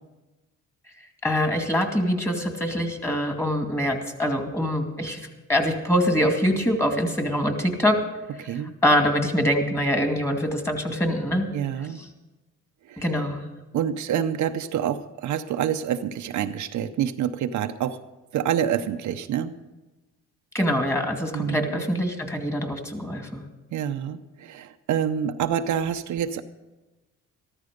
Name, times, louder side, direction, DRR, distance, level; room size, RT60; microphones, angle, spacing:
voice 1, 1.2-5.2 5.5-8.0 8.8-11.5 12.0-12.1 13.0-13.5 20.5-23.4, equal, 10° left, 4 dB, 2.3 m, -24 dB
voice 2, 8.4-8.8 11.5-12.0 12.9-13.0 13.7-18.0 18.3-19.6 21.3-21.9 23.7-26.4, right 9 dB, 75° right, 7 dB, 0.7 m, -27 dB
14.0 x 13.5 x 5.2 m, 1.1 s
cardioid pair, 90°, 30 cm